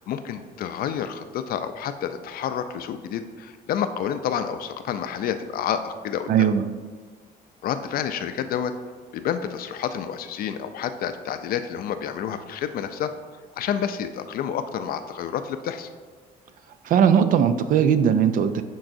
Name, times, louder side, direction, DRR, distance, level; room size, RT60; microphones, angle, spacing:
voice 1, 0.0-6.5 7.6-8.7 9.1-13.1 13.6-15.9, left 8 dB, 60° left, 10 dB, 0.4 m, -29 dB
voice 2, 6.3-6.7 16.9-18.6, right 8 dB, 55° right, 11 dB, 0.4 m, -19 dB
10.0 x 3.8 x 2.6 m, 1.5 s
cardioid pair, 110°, 17 cm